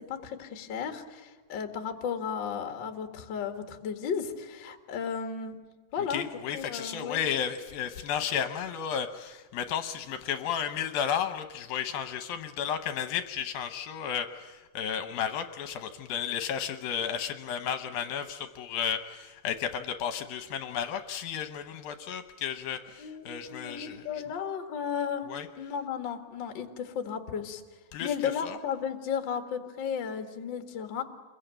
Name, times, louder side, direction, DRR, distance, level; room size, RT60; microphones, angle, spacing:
voice 1, 0.0-5.6 5.9-6.3 6.5-7.2 23.0-25.3 25.6-27.6 28.0-31.0, left 7 dB, 50° left, 5 dB, 1.3 m, -34 dB
voice 2, 6.1-24.2 25.3-25.5 27.9-28.6, left 8 dB, 75° left, 8 dB, 2.4 m, -33 dB
27.0 x 22.0 x 9.1 m, 1.3 s
omnidirectional pair, 4.8 m